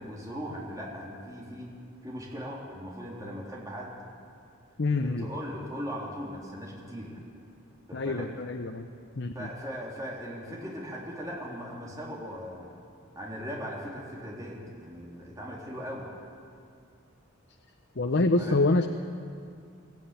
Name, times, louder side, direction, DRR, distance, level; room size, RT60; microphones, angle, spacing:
voice 1, 0.0-1.7 2.0-3.9 5.0-7.2 7.9-8.3 9.4-12.8 13.2-16.1 18.0-18.5, equal, 15° right, -3 dB, 3.4 m, -39 dB
voice 2, 4.8-5.3 7.9-8.9 9.2-9.5 18.0-18.9, left 2 dB, 60° left, 6 dB, 0.8 m, -26 dB
23.5 x 15.0 x 9.1 m, 2.3 s
head